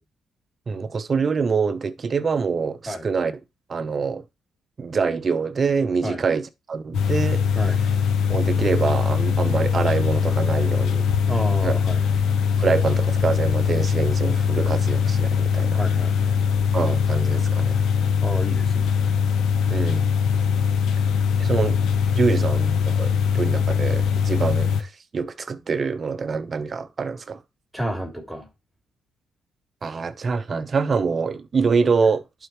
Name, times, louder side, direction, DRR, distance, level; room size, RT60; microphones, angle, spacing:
voice 1, 0.7-3.3 3.7-4.2 4.8-7.5 8.3-11.1 11.6-11.8 12.6-15.8 16.7-17.8 19.7-20.1 21.4-21.8 22.1-27.4 29.8-32.2, right 5 dB, 40° right, 0.8 m, -25 dB
sound 1, 6.9-24.8, left 6 dB, 80° left, 0.8 m, -21 dB
voice 2, 11.3-12.1 15.7-16.4 18.2-18.9 27.7-28.5, equal, ahead, 3.1 m, -30 dB
11.0 x 4.5 x 3.0 m
cardioid pair, 90°, 0 cm